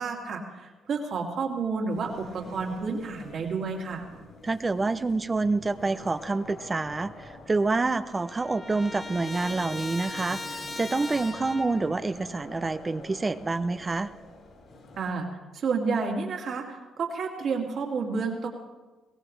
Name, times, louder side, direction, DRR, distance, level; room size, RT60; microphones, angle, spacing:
voice 1, 0.0-4.0 15.0-15.3 15.5-18.5, right 4 dB, 60° right, 0 dB, 2.7 m, -30 dB
sound 1, 1.9-15.1, left 1 dB, 60° left, 4.6 m, -46 dB
voice 2, 4.4-14.1, right 3 dB, 25° right, 12 dB, 0.6 m, -27 dB
Trumpet, 7.2-7.3 7.5-12.0, left 2 dB, 30° left, 1.5 m, -39 dB
22.5 x 17.0 x 3.3 m, 1.2 s
cardioid pair, 90°, 0 cm